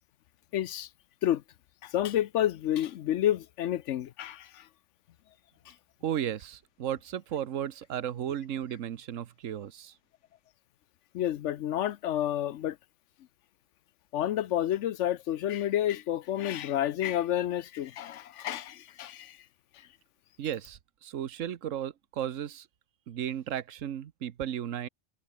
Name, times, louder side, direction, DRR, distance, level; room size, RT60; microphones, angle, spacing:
voice 1, 0.5-0.9 1.2-1.4 1.8-4.7 5.7-5.8 11.1-12.8 14.1-19.4, left 11 dB, 75° left, 0.9 m, -30 dB
voice 2, 6.0-9.9 20.4-22.7 23.1-24.9, right 10 dB, 80° right, 1.3 m, -34 dB
omnidirectional pair, 1.3 m